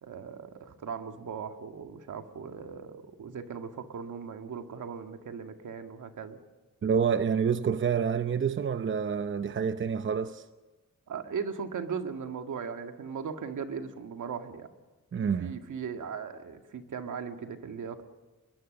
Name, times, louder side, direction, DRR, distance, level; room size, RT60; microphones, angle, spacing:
voice 1, 0.0-6.4 11.1-14.7 15.2-18.0, right 6 dB, 70° right, 2.0 m, -38 dB
voice 2, 6.8-10.4 15.1-15.6, right 7 dB, 40° right, 0.8 m, -28 dB
26.0 x 21.5 x 6.6 m
cardioid pair, 100°, 31 cm